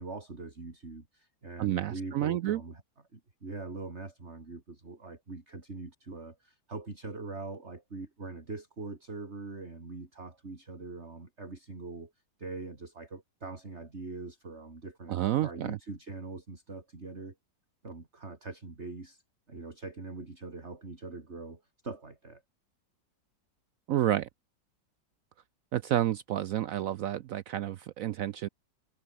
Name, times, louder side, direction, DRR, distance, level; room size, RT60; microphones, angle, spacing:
voice 1, 0.0-2.8 3.1-12.1 12.4-15.2 15.4-17.3 17.8-19.2 19.5-22.4, right 3 dB, 35° right, 3.6 m, -42 dB
voice 2, 1.6-2.6 15.1-15.8 23.9-24.3 25.7-28.5, right 12 dB, 75° right, 0.7 m, -30 dB
omnidirectional pair, 2.0 m